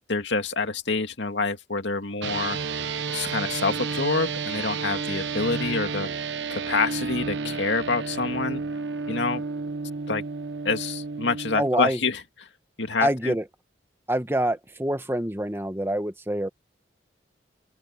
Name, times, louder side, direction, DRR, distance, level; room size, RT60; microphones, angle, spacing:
voice 1, 0.1-2.6 3.1-6.1 6.5-8.6 9.1-9.4 10.1-10.2 10.6-12.2 12.8-13.3, left 3 dB, 75° left, 2.2 m, -27 dB
sound 1, 2.2-11.7, right 4 dB, 75° right, 1.1 m, -31 dB
voice 2, 11.5-12.0 13.0-13.5 14.1-16.5, right 1 dB, 15° right, 1.2 m, -26 dB
open air
head